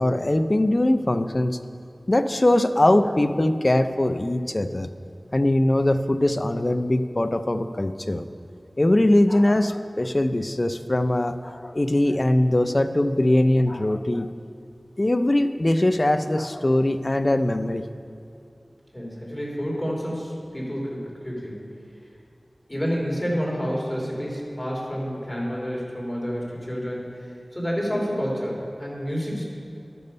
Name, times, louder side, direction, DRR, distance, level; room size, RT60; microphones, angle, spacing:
voice 1, 0.0-1.6 2.1-4.9 5.3-8.2 8.8-14.3 15.0-17.8, left 1 dB, 40° left, 9 dB, 0.5 m, -21 dB
voice 2, 18.9-21.7 22.7-29.5, equal, 15° left, -4 dB, 3.0 m, -29 dB
12.0 x 6.9 x 5.3 m, 2.6 s
wide cardioid pair, 60°, 0 cm